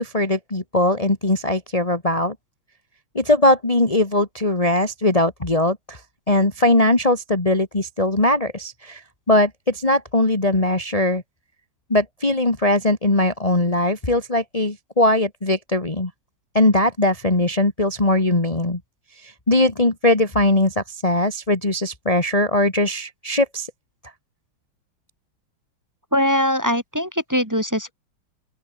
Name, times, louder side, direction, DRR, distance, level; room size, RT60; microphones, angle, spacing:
voice 1, 0.0-2.4 3.1-6.0 6.3-9.0 9.3-11.2 11.9-16.1 16.5-18.8 19.2-23.7, left 1 dB, 15° left, 2.3 m, -20 dB
voice 2, 26.1-27.9, equal, 10° right, 3.0 m, -21 dB
open air
omnidirectional pair, 2.3 m